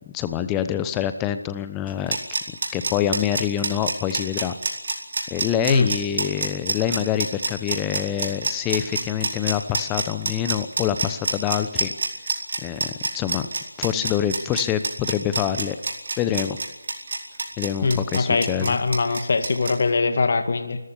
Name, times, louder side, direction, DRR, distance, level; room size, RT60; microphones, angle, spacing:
voice 1, 0.1-2.2 2.7-4.6 5.3-11.9 12.6-13.5 13.8-15.8 16.2-16.6 17.6-18.8, left 10 dB, 15° left, 10 dB, 0.9 m, -26 dB
sound 1, 1.9-19.7, right 3 dB, 55° right, 4.5 m, -27 dB
voice 2, 17.8-20.8, left 4 dB, 50° left, 7 dB, 2.0 m, -22 dB
29.0 x 14.5 x 9.7 m, 1.0 s
figure-of-eight pair, 155°, 0 cm